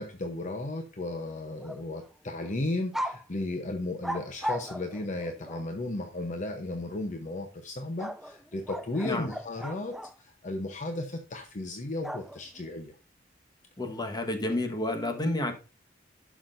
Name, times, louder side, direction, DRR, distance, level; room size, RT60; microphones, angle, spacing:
voice 1, 0.0-13.0, left 2 dB, 45° left, 5 dB, 0.8 m, -35 dB
sound 1, 1.5-2.1 2.4-2.5 2.9-3.2 4.0-5.7 8.0-10.1 12.0-12.6, equal, ahead, 0.3 m, -37 dB
voice 2, 13.8-15.5, left 1 dB, 25° left, 5 dB, 1.3 m, -30 dB
11.5 x 6.1 x 2.5 m, 0.33 s
head